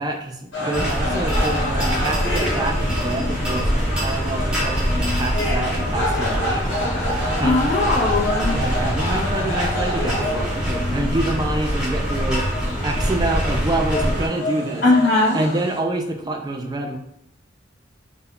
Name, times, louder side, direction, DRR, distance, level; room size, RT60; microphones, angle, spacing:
voice 1, 0.0-7.6 8.5-14.8 15.3-17.0, right 2 dB, 20° right, 3 dB, 0.3 m, -27 dB
sound 1, 0.5-15.8, left 1 dB, 70° left, 1.0 m, -28 dB
sound 2, 0.7-14.3, equal, 5° right, 0.7 m, -24 dB
voice 2, 7.4-8.5 14.8-15.4, left 2 dB, 55° left, -6 dB, 0.5 m, -18 dB
2.2 x 2.1 x 3.6 m, 0.76 s
head